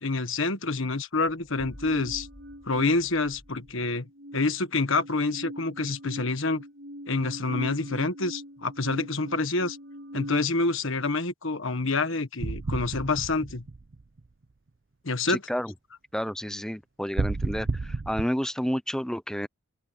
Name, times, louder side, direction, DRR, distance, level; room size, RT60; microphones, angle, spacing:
voice 1, 0.0-2.3 2.6-4.0 4.3-6.6 7.1-9.8 10.1-13.6 15.0-15.4, left 3 dB, 65° left, 1.5 m, -27 dB
sound 1, 1.2-4.0, equal, 30° left, 3.2 m, -50 dB
sound 2, 1.6-3.7 4.0-10.4, equal, 70° right, 4.5 m, -42 dB
sound 3, 12.4-14.3 17.2-18.3, right 3 dB, 50° right, 0.6 m, -31 dB
voice 2, 15.3-15.7 16.1-19.5, equal, 5° left, 0.6 m, -30 dB
open air
head